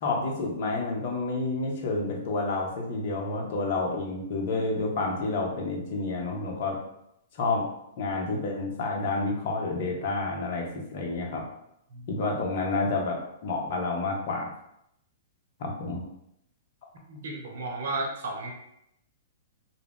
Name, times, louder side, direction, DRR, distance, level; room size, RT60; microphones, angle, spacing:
voice 1, 0.0-6.8 7.3-7.6 8.0-11.4 12.1-14.5 15.6-16.0, left 3 dB, 55° left, 0 dB, 0.7 m, -29 dB
voice 2, 17.1-18.5, right 2 dB, 65° right, 2 dB, 0.7 m, -33 dB
2.3 x 2.1 x 3.5 m, 0.77 s
hypercardioid pair, 120°, 0 cm